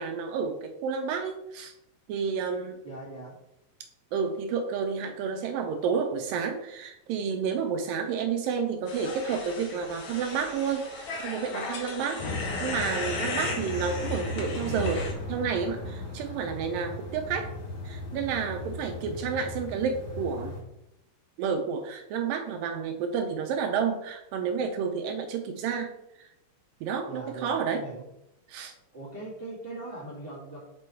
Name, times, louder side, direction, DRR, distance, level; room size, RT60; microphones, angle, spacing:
voice 1, 0.0-1.7 2.1-2.8 4.1-17.5 17.8-20.6 21.4-25.9 26.2-26.3 26.8-27.9 28.5-28.7, right 6 dB, 80° right, 6 dB, 2.1 m, -30 dB
voice 2, 2.8-3.4 13.4-13.6 27.1-28.0 28.9-30.6, right 2 dB, 25° right, -6 dB, 1.2 m, -40 dB
sound 1, 8.9-15.1, left 3 dB, 85° left, 1.0 m, -36 dB
sound 2, 12.2-20.6, left 2 dB, 35° left, 2.7 m, -36 dB
6.1 x 5.3 x 4.5 m, 0.83 s
omnidirectional pair, 4.4 m